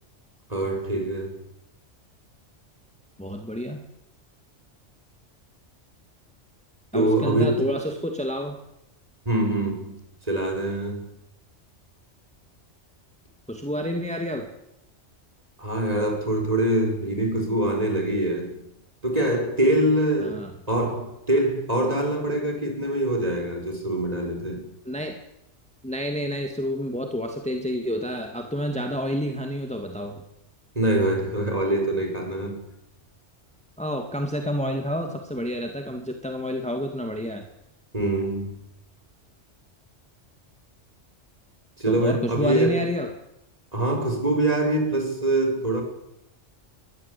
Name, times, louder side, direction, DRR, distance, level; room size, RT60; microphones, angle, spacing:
voice 1, 0.5-1.4 6.9-7.8 9.3-10.0 10.3-11.1 15.6-18.6 19.0-24.7 30.8-32.6 37.9-38.5 41.8-42.8 43.7-45.8, right 1 dB, 30° right, 2 dB, 6.1 m, -24 dB
voice 2, 3.2-3.8 6.9-8.6 13.5-14.5 20.2-20.5 24.8-25.2 25.8-30.2 33.8-37.4 41.9-43.1, equal, 5° left, 3 dB, 2.2 m, -29 dB
23.0 x 17.5 x 8.6 m, 0.83 s
omnidirectional pair, 1.2 m